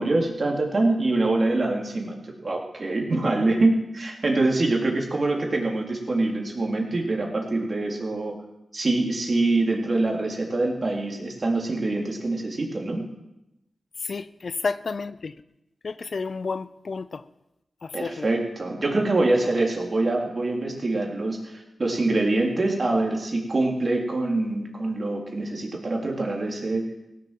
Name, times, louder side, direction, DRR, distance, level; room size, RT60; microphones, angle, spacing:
voice 1, 0.0-8.3 8.7-13.0 17.9-26.8, right 2 dB, 50° right, 3.6 m, -25 dB
voice 2, 14.0-15.3 15.8-17.2 17.8-18.3, left 4 dB, 65° left, 0.6 m, -31 dB
17.0 x 7.5 x 7.7 m
cardioid pair, 40°, 0 cm